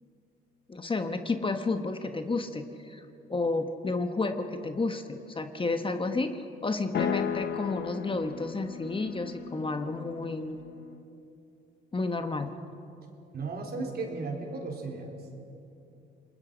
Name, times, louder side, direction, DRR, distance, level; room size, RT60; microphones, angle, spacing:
voice 1, 0.7-3.0 3.3-10.6 11.9-12.5, left 3 dB, 25° left, 7 dB, 1.2 m, -31 dB
sound 1, 6.9-11.1, left 7 dB, 55° left, 0.9 m, -35 dB
voice 2, 13.3-15.2, right 3 dB, 55° right, 1 dB, 3.9 m, -35 dB
28.0 x 21.0 x 5.2 m, 2.8 s
cardioid pair, 90°, 20 cm